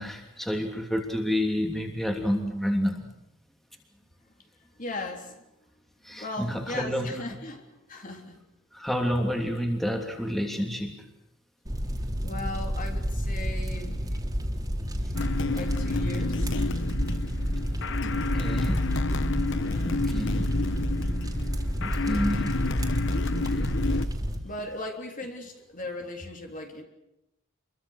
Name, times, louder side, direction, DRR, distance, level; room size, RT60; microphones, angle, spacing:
voice 1, 0.0-3.1 6.0-7.1 8.7-10.9 18.1-18.9 19.8-20.5 21.8-22.6 23.5-23.6 24.0-24.1, equal, ahead, 2 dB, 3.1 m, -29 dB
voice 2, 4.8-5.4 6.1-8.4 12.2-14.1 15.5-16.6 19.6-20.0 24.4-26.8, left 2 dB, 40° left, 3 dB, 3.5 m, -38 dB
sound 1, 11.7-24.4, equal, 20° right, 3.5 m, -30 dB
rumbling bones, 15.1-24.1, left 2 dB, 60° left, 1.1 m, -29 dB
27.5 x 23.0 x 6.6 m, 0.88 s
head